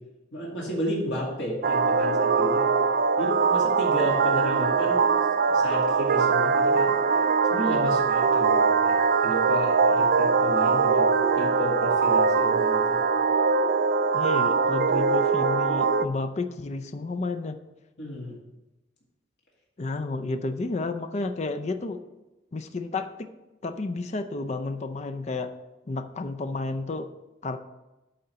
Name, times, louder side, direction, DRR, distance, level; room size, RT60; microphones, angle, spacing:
voice 1, 0.3-2.7 3.2-5.1 5.5-6.9 7.5-13.0 18.0-18.4, equal, 80° left, -4 dB, 2.3 m, -32 dB
sound 1, 1.6-16.1, right 5 dB, 55° right, 0.4 m, -22 dB
voice 2, 14.1-17.6 19.8-22.0 22.5-23.1 23.6-25.5 25.9-27.1 27.4-27.6, left 3 dB, 40° left, 8 dB, 0.5 m, -31 dB
8.5 x 3.9 x 6.8 m, 1.0 s
head